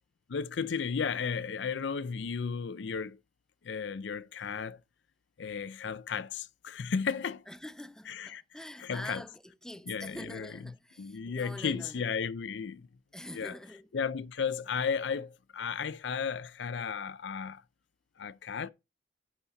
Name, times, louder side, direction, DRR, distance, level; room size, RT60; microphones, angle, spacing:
voice 1, 0.3-3.2 3.6-4.8 5.4-7.4 8.1-8.4 8.8-9.2 9.9-10.5 11.0-12.9 13.3-13.6 13.9-17.6 18.2-18.7, left 6 dB, 70° left, 0.5 m, -34 dB
voice 2, 7.5-12.3 13.1-13.9, equal, 5° left, 0.5 m, -45 dB
10.5 x 4.1 x 5.7 m
head